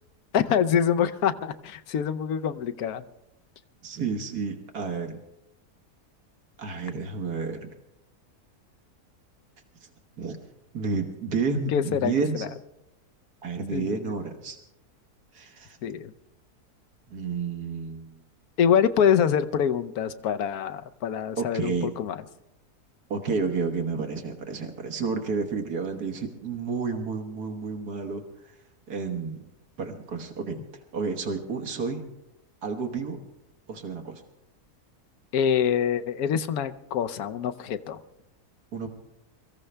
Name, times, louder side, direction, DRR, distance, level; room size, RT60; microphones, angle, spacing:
voice 1, 0.3-3.0 11.7-12.1 12.4-12.5 13.7-14.1 15.8-16.1 18.6-22.2 35.3-38.0, left 8 dB, 70° left, 11 dB, 1.2 m, -25 dB
voice 2, 3.8-5.2 6.6-7.7 10.2-10.4 10.7-12.5 13.4-14.6 15.3-15.8 17.1-18.1 21.4-21.9 23.1-28.6 28.9-29.4 29.8-30.6 30.9-32.0 32.6-33.2 33.7-34.2 38.7-38.9, right 4 dB, 75° right, 5 dB, 1.8 m, -30 dB
23.5 x 14.5 x 3.4 m, 0.88 s
omnidirectional pair, 1.7 m